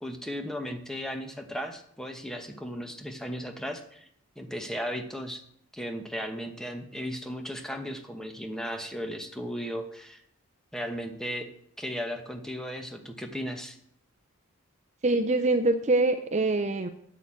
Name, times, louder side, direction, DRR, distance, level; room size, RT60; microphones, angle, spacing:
voice 1, 0.0-4.1 4.4-5.4 5.7-10.2 10.7-11.5 11.8-13.8, equal, ahead, 5 dB, 1.1 m, -36 dB
voice 2, 15.0-16.9, right 2 dB, 30° right, 8 dB, 0.5 m, -24 dB
9.3 x 6.7 x 8.4 m, 0.69 s
head